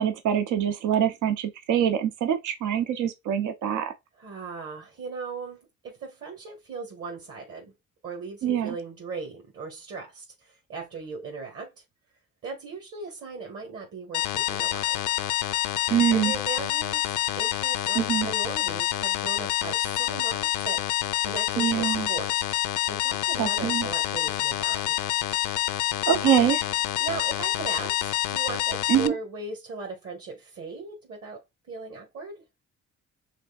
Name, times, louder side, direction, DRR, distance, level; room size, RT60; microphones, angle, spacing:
voice 1, 0.0-3.9 8.4-8.7 15.9-16.3 17.9-18.3 21.6-22.1 23.4-23.9 26.1-26.8 28.9-29.1, right 10 dB, 80° right, 0.8 m, -24 dB
voice 2, 4.2-7.7 8.0-11.7 12.4-15.0 15.5-15.7 16.1-20.8 21.2-22.4 22.9-25.0 27.0-32.4, right 4 dB, 50° right, 1.6 m, -38 dB
sound 1, 14.1-29.1, left 14 dB, 85° left, 0.5 m, -27 dB
5.1 x 3.5 x 2.4 m
cardioid pair, 90°, 30 cm